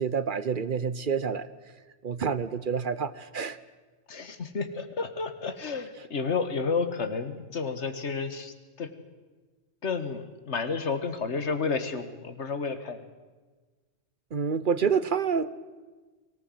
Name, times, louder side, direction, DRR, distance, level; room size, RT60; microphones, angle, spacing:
voice 1, 0.0-1.5 2.0-3.6 14.3-15.5, right 6 dB, 50° right, 15 dB, 1.0 m, -28 dB
voice 2, 4.1-8.9 9.8-13.0, left 4 dB, 85° left, 10 dB, 1.9 m, -31 dB
24.0 x 18.5 x 7.9 m, 1.3 s
omnidirectional pair, 1.2 m